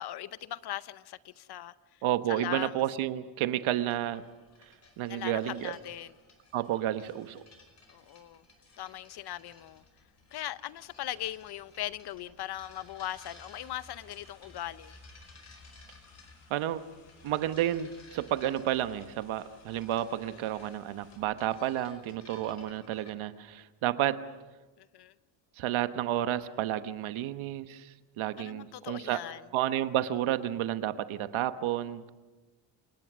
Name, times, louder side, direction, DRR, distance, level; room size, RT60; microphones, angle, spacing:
voice 1, 0.0-2.7 5.1-6.1 7.9-8.4 8.8-9.8 10.3-15.0 20.3-20.7 24.8-25.1 28.4-29.5, left 13 dB, 50° left, 0.8 m, -40 dB
voice 2, 2.0-4.2 5.0-5.7 6.5-7.4 16.5-16.9 17.2-24.3 25.6-29.2 29.5-32.1, right 12 dB, 70° right, 1.3 m, -31 dB
sound 1, 3.9-23.1, left 2 dB, 30° left, 5.0 m, -57 dB
sound 2, 13.1-21.2, left 5 dB, 85° left, 7.7 m, -63 dB
28.5 x 18.5 x 6.2 m
cardioid pair, 125°, 50 cm